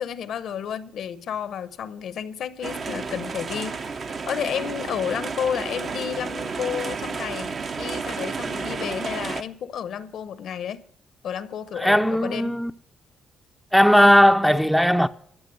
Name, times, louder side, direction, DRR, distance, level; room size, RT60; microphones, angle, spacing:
voice 1, 0.0-10.8 11.2-12.6, left 8 dB, 70° left, 0.8 m, -31 dB
sound 1, 2.6-9.4, right 4 dB, 45° right, 0.7 m, -31 dB
voice 2, 11.8-12.7 13.7-15.1, equal, ahead, 0.5 m, -17 dB
13.5 x 6.7 x 7.7 m
cardioid pair, 90°, 0 cm